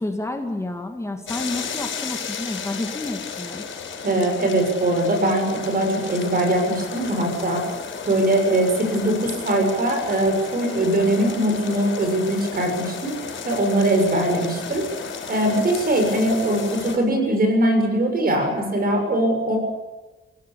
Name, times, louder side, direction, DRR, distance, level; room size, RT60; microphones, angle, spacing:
voice 1, 0.0-3.6, left 2 dB, 15° left, 3 dB, 2.3 m, -30 dB
sound 1, 1.3-17.0, left 5 dB, 70° left, 5.0 m, -33 dB
voice 2, 4.0-7.6 8.1-13.1 13.5-14.8 15.3-19.6, right 1 dB, 45° right, 4 dB, 6.9 m, -21 dB
28.5 x 17.0 x 8.7 m, 1.2 s
wide cardioid pair, 140°, 21 cm